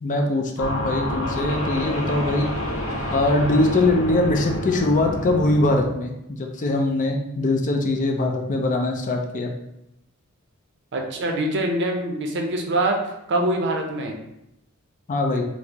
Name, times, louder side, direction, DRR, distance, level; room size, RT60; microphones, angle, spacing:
voice 1, 0.0-2.5 3.1-9.5 15.1-15.4, left 2 dB, 35° left, 2 dB, 0.4 m, -22 dB
sound 1, 0.6-5.8, left 1 dB, 65° left, 0.8 m, -28 dB
voice 2, 10.9-12.9 13.3-14.1, right 1 dB, 55° right, 2 dB, 0.5 m, -24 dB
4.2 x 2.0 x 2.8 m, 0.83 s
head